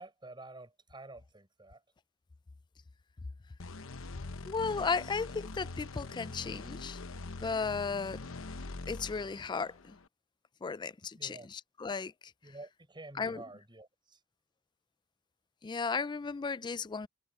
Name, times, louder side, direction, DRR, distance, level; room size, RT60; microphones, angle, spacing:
voice 1, 0.0-1.8 11.2-11.5 12.4-14.2, right 2 dB, 25° right, 6.0 m, -49 dB
sound 1, 3.6-10.1, left 3 dB, 80° left, 1.0 m, -44 dB
voice 2, 4.5-7.0 7.4-8.2 8.9-10.0 10.6-12.1 13.1-13.4 15.6-17.1, left 5 dB, 20° left, 0.3 m, -35 dB
head